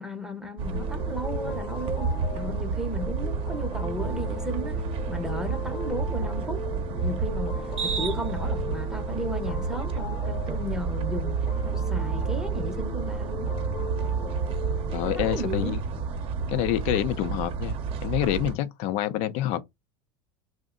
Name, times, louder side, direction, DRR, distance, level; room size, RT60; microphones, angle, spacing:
voice 1, 0.0-6.6 7.0-13.5 14.9-15.8, equal, 5° right, 0.8 m, -35 dB
sound 1, 0.6-18.5, right 5 dB, 45° right, 0.8 m, -30 dB
sound 2, 0.7-15.2, left 3 dB, 30° left, 0.8 m, -39 dB
voice 2, 14.9-15.8 16.5-17.8 18.0-19.6, left 12 dB, 60° left, 0.6 m, -27 dB
2.6 x 2.1 x 3.7 m
supercardioid pair, 105°, 13 cm